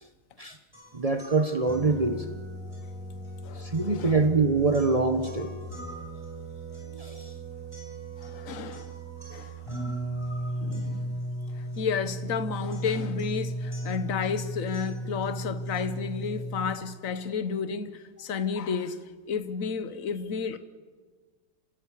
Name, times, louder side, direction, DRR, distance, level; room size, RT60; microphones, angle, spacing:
sound 1, 0.7-16.7, right 1 dB, 15° left, 6.4 m, -36 dB
voice 1, 0.9-2.3 3.5-5.5 6.9-7.3, right 3 dB, 45° right, 0.4 m, -25 dB
voice 2, 3.4-4.2 8.2-8.9 9.3-9.5 10.6-11.2 11.6-20.6, left 6 dB, 45° left, 1.3 m, -32 dB
26.5 x 17.0 x 8.4 m
omnidirectional pair, 2.3 m